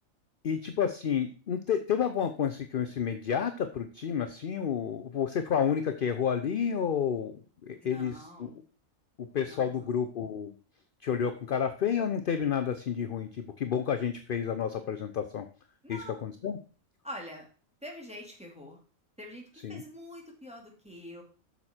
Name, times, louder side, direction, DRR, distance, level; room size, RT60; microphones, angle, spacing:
voice 1, 0.4-8.6 9.2-10.5 11.0-15.5 15.9-16.6 19.6-19.8, left 7 dB, 50° left, 9 dB, 0.7 m, -30 dB
voice 2, 7.8-8.6 9.5-9.9 15.8-16.2 17.0-17.4 17.8-18.8 19.2-21.2, equal, 5° right, -1 dB, 2.4 m, -45 dB
8.2 x 6.4 x 4.4 m, 0.38 s
omnidirectional pair, 1.4 m